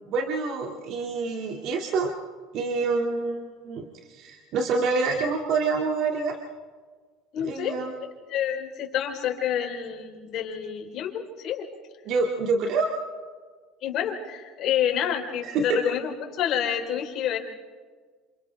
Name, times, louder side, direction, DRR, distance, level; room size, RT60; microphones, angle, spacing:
voice 1, 0.1-2.1 2.5-6.4 7.4-7.9 12.1-12.9 15.4-15.8, right 4 dB, 60° right, 1 dB, 2.2 m, -27 dB
voice 2, 7.3-7.8 8.0-11.7 13.8-17.4, left 9 dB, 55° left, 3 dB, 3.9 m, -28 dB
28.0 x 27.5 x 3.4 m, 1.6 s
hypercardioid pair, 80°, 0 cm